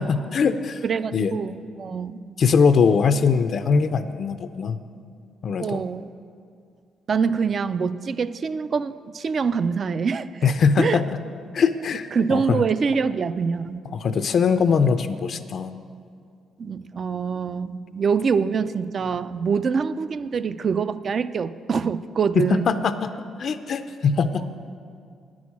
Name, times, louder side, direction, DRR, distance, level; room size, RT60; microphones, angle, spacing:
voice 1, 0.0-0.8 1.1-1.3 2.4-4.8 5.4-5.9 10.4-11.1 11.5-12.6 13.9-15.7 22.4-23.1 23.4-24.5, left 5 dB, 55° left, 10 dB, 0.4 m, -21 dB
voice 2, 0.8-2.3 5.6-6.1 7.1-10.5 10.8-11.0 12.1-13.8 16.6-22.8 24.4-24.5, right 5 dB, 45° right, 14 dB, 0.4 m, -25 dB
9.5 x 6.2 x 8.4 m, 2.3 s
cardioid pair, 90°, 0 cm